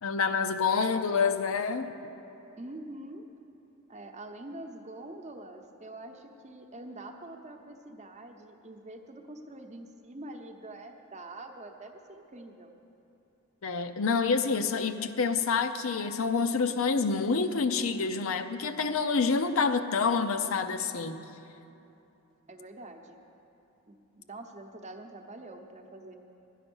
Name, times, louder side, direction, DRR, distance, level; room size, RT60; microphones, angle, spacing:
voice 1, 0.0-1.9 13.6-21.2, left 5 dB, 70° left, 8 dB, 0.5 m, -27 dB
voice 2, 2.6-3.2 3.9-12.7 22.5-23.2 23.9-26.1, right 2 dB, 35° right, 4 dB, 0.8 m, -45 dB
12.0 x 9.2 x 6.2 m, 2.9 s
head